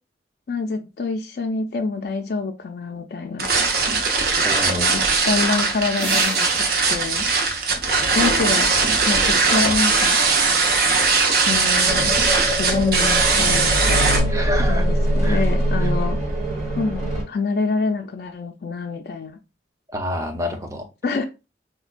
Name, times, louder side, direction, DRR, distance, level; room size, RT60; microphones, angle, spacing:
voice 1, 0.5-3.5 4.7-6.5 6.9-7.3 8.1-8.7 9.1-10.2 11.5-12.1 12.5-14.3 14.7-16.2 16.8-19.4 21.0-21.3, left 4 dB, 60° left, 0.4 m, -26 dB
sound 1, 3.4-14.2, right 4 dB, 55° right, 0.7 m, -19 dB
voice 2, 4.4-4.9 14.3-14.9 15.2-15.4 15.8-15.9 19.9-20.9, left 1 dB, 20° right, 0.6 m, -28 dB
sound 2, 6.0-8.5, right 2 dB, 75° right, 1.8 m, -35 dB
sound 3, 11.9-17.2, equal, 40° right, 1.6 m, -22 dB
4.9 x 2.2 x 2.4 m
head